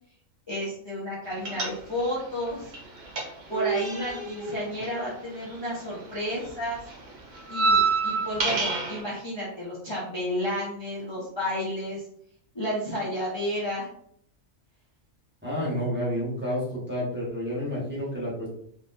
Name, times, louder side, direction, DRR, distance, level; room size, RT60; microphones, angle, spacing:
voice 1, 0.5-2.7 3.5-6.8 7.5-12.0 12.5-13.9, left 1 dB, 25° left, -8 dB, 0.9 m, -31 dB
sound 1, 1.4-2.2 2.5-5.9 6.1-9.0, right 4 dB, 40° right, 0.8 m, -28 dB
voice 2, 15.4-18.5, equal, 10° right, -8 dB, 1.3 m, -30 dB
4.0 x 3.3 x 2.6 m, 0.67 s
omnidirectional pair, 1.4 m